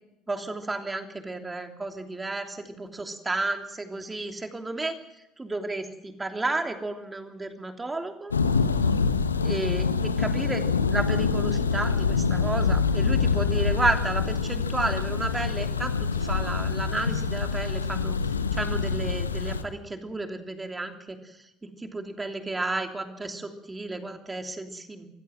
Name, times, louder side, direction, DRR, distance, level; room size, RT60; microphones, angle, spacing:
voice 1, 0.3-5.0 5.4-8.3 9.4-18.2 18.5-25.1, right 2 dB, 15° right, 5 dB, 3.1 m, -32 dB
Thunder, 8.3-19.6, left 5 dB, 85° left, 1.2 m, -25 dB
25.5 x 16.0 x 7.7 m, 0.86 s
figure-of-eight pair, 65°, 0 cm